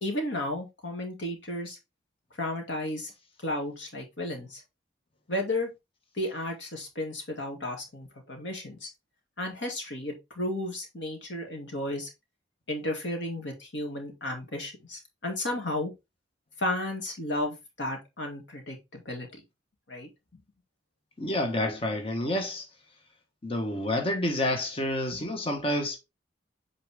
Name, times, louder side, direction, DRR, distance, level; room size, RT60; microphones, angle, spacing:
voice 1, 0.0-1.8 2.4-3.1 3.4-4.6 5.3-5.7 6.1-8.9 9.4-12.1 12.7-15.9 16.6-19.3 19.9-20.1, left 1 dB, 80° left, 2.3 m, -33 dB
voice 2, 21.2-22.6 23.4-26.0, left 1 dB, 30° left, 1.3 m, -29 dB
8.6 x 4.0 x 3.5 m
head